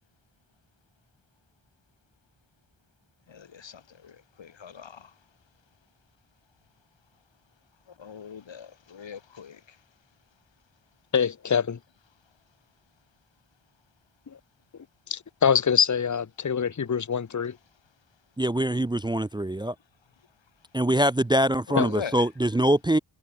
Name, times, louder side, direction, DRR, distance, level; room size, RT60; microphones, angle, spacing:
voice 1, 3.3-3.7 4.0-4.1 4.4-4.9 8.0-9.6 21.7-22.1, left 7 dB, 75° left, 1.7 m, -39 dB
voice 2, 11.1-11.8 15.1-17.5 21.8-21.9, left 7 dB, 40° left, 0.9 m, -24 dB
voice 3, 18.4-19.7 20.7-23.0, right 1 dB, 10° right, 0.5 m, -23 dB
cardioid pair, 55°, 44 cm